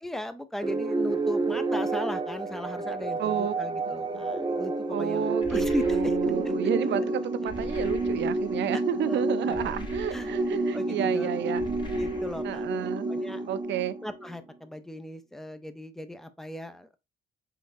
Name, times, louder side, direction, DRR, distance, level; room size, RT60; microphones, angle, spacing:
voice 1, 0.0-6.3 9.1-9.8 10.1-10.3 10.7-11.3 12.0-13.4 14.0-17.0, left 1 dB, ahead, 0.5 m, -37 dB
sound 1, 0.6-14.3, right 2 dB, 20° right, 0.8 m, -29 dB
voice 2, 3.2-3.5 4.1-4.2 4.9-11.6 12.4-13.1 13.5-14.0, right 10 dB, 65° right, 0.5 m, -31 dB
sound 2, 5.4-6.5 7.5-8.5 9.5-10.6 11.6-12.6, left 1 dB, 25° left, 1.1 m, -42 dB
3.9 x 3.6 x 2.5 m
cardioid pair, 90°, 20 cm